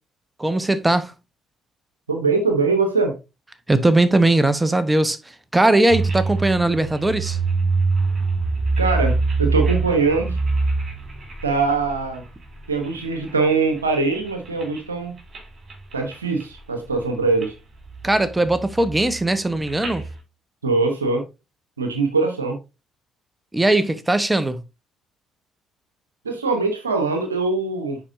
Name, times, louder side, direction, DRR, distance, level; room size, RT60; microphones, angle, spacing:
voice 1, 0.4-1.1 3.7-7.4 18.0-20.0 23.5-24.6, right 2 dB, 15° right, 1.0 m, -19 dB
voice 2, 2.1-3.2 8.8-10.4 11.4-12.2 12.7-15.1 15.9-17.5 20.6-21.2 21.8-22.6 26.2-28.0, right 4 dB, 90° right, 0.9 m, -22 dB
sound 1, 5.9-13.3 13.7-14.8 15.2-15.4 15.7-16.6 16.9-17.5 17.8-20.2, right 3 dB, 40° right, 3.3 m, -25 dB
9.8 x 4.4 x 2.6 m
hypercardioid pair, 45°, 0 cm